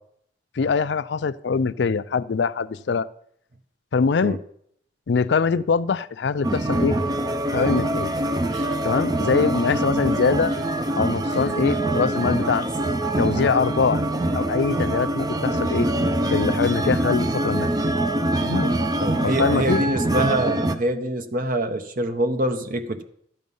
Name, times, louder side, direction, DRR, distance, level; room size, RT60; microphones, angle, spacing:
voice 1, 0.6-3.1 3.9-4.4 5.1-7.0 7.5-8.1 8.8-10.5 11.0-12.7 13.2-14.0 14.3-15.9 16.3-17.8 18.4-18.7 19.2-19.8, left 5 dB, 65° left, 0.4 m, -23 dB
sound 1, 6.4-20.8, right 1 dB, 20° right, 0.5 m, -24 dB
sound 2, 7.5-13.6, right 1 dB, 85° right, 2.1 m, -40 dB
voice 2, 19.0-23.0, right 1 dB, 50° right, 0.8 m, -25 dB
12.5 x 7.7 x 5.4 m
head